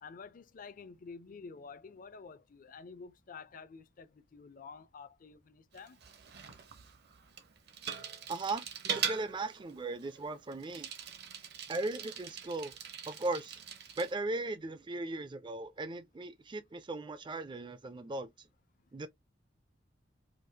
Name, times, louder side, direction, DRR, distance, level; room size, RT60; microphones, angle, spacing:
voice 1, 0.0-6.0, left 5 dB, 45° left, 0.5 m, -50 dB
Bicycle, 5.7-14.1, right 7 dB, 60° right, 0.9 m, -42 dB
voice 2, 8.3-8.7 8.9-10.9 11.7-12.8 13.1-13.6 14.0-18.5 18.9-19.1, right 2 dB, 25° right, 0.4 m, -37 dB
5.0 x 2.0 x 2.7 m
head